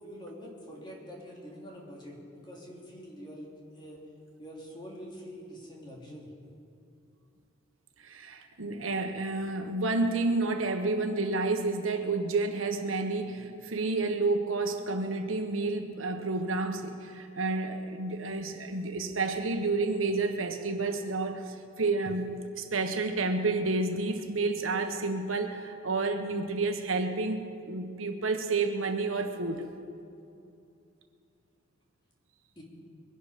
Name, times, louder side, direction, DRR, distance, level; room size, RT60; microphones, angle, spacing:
voice 1, 0.0-4.0 4.4-6.3 32.6-32.7, equal, 25° left, -3 dB, 3.0 m, -45 dB
voice 2, 8.0-29.7, right 3 dB, 90° right, 5 dB, 1.3 m, -30 dB
22.0 x 11.0 x 5.1 m, 2.6 s
head